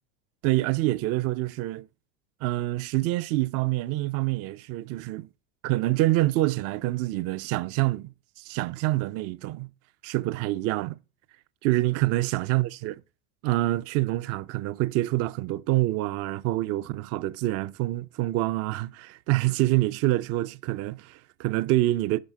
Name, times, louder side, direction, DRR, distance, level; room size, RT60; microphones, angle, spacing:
voice 1, 0.4-1.9 2.4-5.3 5.6-8.1 8.4-9.7 10.0-11.0 11.6-13.0 13.4-22.2, right 17 dB, 40° right, 0.4 m, -26 dB
10.5 x 3.5 x 5.5 m
supercardioid pair, 110°, 39 cm